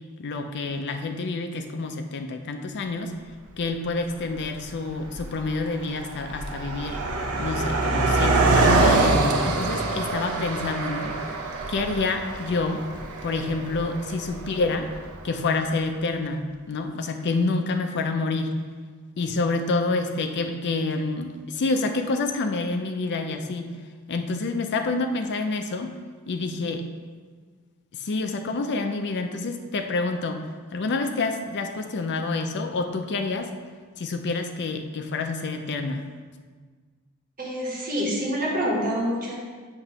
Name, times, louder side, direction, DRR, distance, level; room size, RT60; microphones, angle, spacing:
voice 1, 0.2-3.1 3.6-7.0 7.4-11.1 11.7-12.8 13.2-14.9 15.2-18.5 19.2-23.7 24.1-25.9 26.3-26.9 27.9-30.4 30.7-33.5 34.0-36.0, left 3 dB, 50° left, 6 dB, 0.5 m, -28 dB
Car passing by, 3.5-3.6 4.4-4.6 4.9-15.3, right 2 dB, 75° right, 0.7 m, -25 dB
voice 2, 37.4-39.4, equal, 40° right, -4 dB, 1.6 m, -26 dB
7.8 x 2.9 x 5.5 m, 1.5 s
head